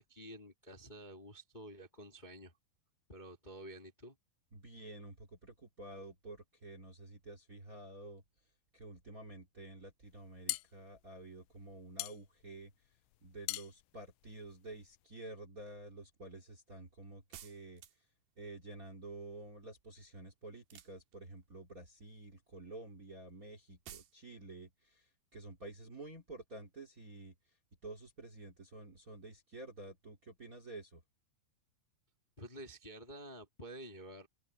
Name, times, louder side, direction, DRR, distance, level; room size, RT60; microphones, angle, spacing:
voice 1, 0.0-2.5 3.1-4.2 32.4-34.3, right 1 dB, 15° left, 1.8 m, -50 dB
voice 2, 4.5-8.2 8.7-12.7 13.2-17.8 18.4-27.3 27.8-31.0, right 2 dB, 25° right, 2.1 m, -50 dB
sound 1, 10.1-15.0, left 19 dB, 80° left, 2.2 m, -43 dB
sound 2, 17.3-18.2 20.6-21.4 23.9-24.2, right 11 dB, 70° right, 3.2 m, -53 dB
open air
omnidirectional pair, 4.7 m